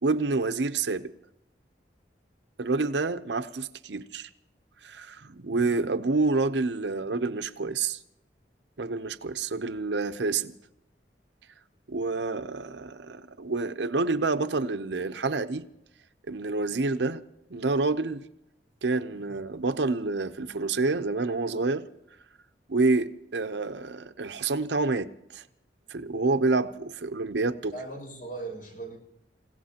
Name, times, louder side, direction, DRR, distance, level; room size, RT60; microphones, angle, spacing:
voice 1, 0.0-1.1 2.6-4.3 4.8-8.0 8.8-10.5 11.9-15.6 16.3-17.2 17.5-18.2 18.8-21.8 22.7-25.4 25.9-27.7, right 3 dB, 75° right, 0.8 m, -28 dB
voice 2, 27.7-29.0, right 3 dB, 55° left, 6.3 m, -39 dB
29.5 x 16.5 x 2.9 m
head